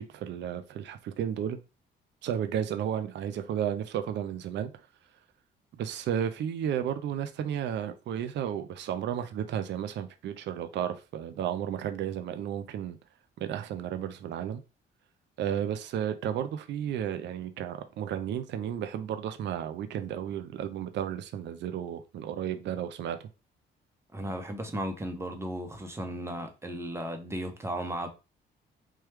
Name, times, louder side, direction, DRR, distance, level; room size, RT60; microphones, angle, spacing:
voice 1, 0.0-1.6 2.2-4.9 5.8-13.0 13.4-14.6 15.4-23.3, right 9 dB, 65° right, 0.4 m, -33 dB
voice 2, 24.1-28.1, right 1 dB, 15° right, 0.7 m, -35 dB
3.1 x 2.2 x 3.2 m
cardioid pair, 90°, 20 cm